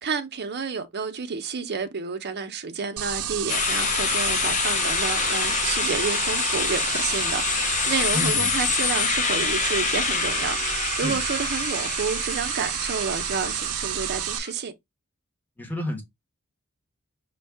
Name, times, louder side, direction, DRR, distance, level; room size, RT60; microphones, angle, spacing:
voice 1, 0.0-14.7, right 5 dB, 50° right, 0.7 m, -30 dB
sound 1, 3.0-14.4, right 10 dB, 85° right, 0.5 m, -30 dB
sound 2, 3.5-14.5, left 7 dB, 35° left, 0.4 m, -27 dB
voice 2, 8.1-8.5 11.0-11.2 15.6-16.0, left 1 dB, 10° left, 1.2 m, -30 dB
5.3 x 2.3 x 3.4 m
head